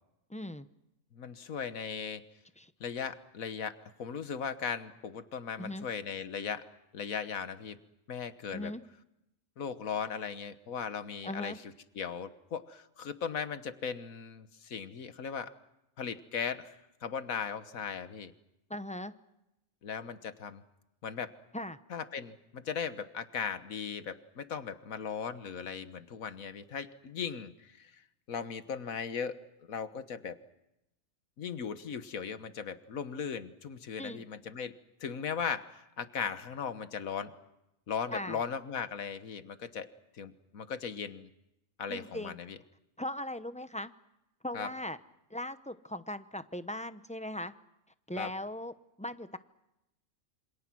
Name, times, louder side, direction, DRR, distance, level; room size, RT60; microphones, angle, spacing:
voice 1, 0.3-0.7 2.6-2.7 5.6-5.9 8.5-8.8 11.2-11.6 18.7-19.1 21.5-21.8 34.0-34.2 38.1-38.4 41.9-42.4 43.0-43.9 44.4-45.0 45.3-47.5 48.1-48.7 49.0-49.4, left 1 dB, 5° left, 11 dB, 0.6 m, -38 dB
voice 2, 1.1-2.2 2.8-6.6 6.9-7.8 8.1-8.7 9.6-15.5 16.0-16.7 17.0-18.3 19.8-20.6 21.0-21.3 21.9-28.0 28.3-29.4 29.7-30.4 31.4-34.7 35.0-37.3 37.9-39.9 40.1-41.3 41.8-42.6 44.5-44.7 48.2-48.3, left 6 dB, 80° left, 11 dB, 1.7 m, -38 dB
27.5 x 26.0 x 6.2 m, 0.89 s
omnidirectional pair, 1.4 m